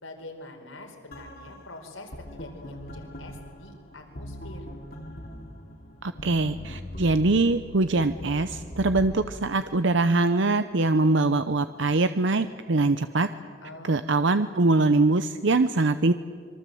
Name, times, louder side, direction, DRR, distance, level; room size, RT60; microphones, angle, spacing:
voice 1, 0.0-4.6 13.6-14.0, left 2 dB, 85° left, 3 dB, 4.5 m, -44 dB
sound 1, 1.1-9.2, left 1 dB, 50° left, 2.5 m, -41 dB
voice 2, 6.0-13.3 13.8-16.1, right 3 dB, 65° right, 10 dB, 0.7 m, -23 dB
26.0 x 23.5 x 7.8 m, 2.1 s
head